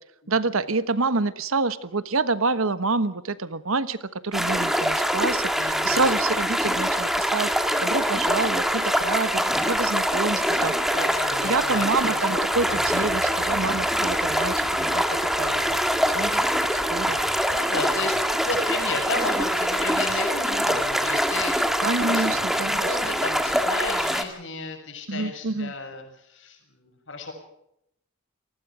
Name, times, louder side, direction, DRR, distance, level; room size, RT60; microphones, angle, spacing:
voice 1, 0.3-4.0 4.2-7.5 7.8-10.7 11.3-15.0 15.4-15.8 16.1-16.3 16.7-17.3 21.8-23.0 25.1-25.7, right 3 dB, 80° right, 14 dB, 1.2 m, -27 dB
sound 1, 4.3-24.2, equal, ahead, 1.8 m, -24 dB
voice 2, 5.5-6.1 10.4-12.4 12.7-13.2 17.2-21.7 22.0-27.3, left 3 dB, 60° left, 5 dB, 6.6 m, -34 dB
sound 2, 7.5-15.8, left 2 dB, 20° left, 3.6 m, -40 dB
sound 3, 12.5-17.6, left 1 dB, 75° left, 7.4 m, -45 dB
28.5 x 19.5 x 5.0 m, 0.79 s
head